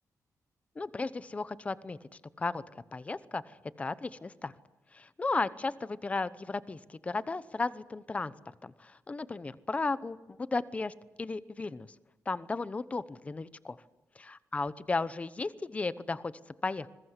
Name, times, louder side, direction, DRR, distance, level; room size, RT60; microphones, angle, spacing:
voice 1, 0.8-2.0 2.4-2.6 2.9-4.5 4.9-8.3 8.6-11.9 12.3-13.8 14.3-16.9, left 3 dB, 20° left, 16 dB, 0.9 m, -35 dB
27.5 x 21.5 x 8.2 m, 1.1 s
wide cardioid pair, 175°, 6 cm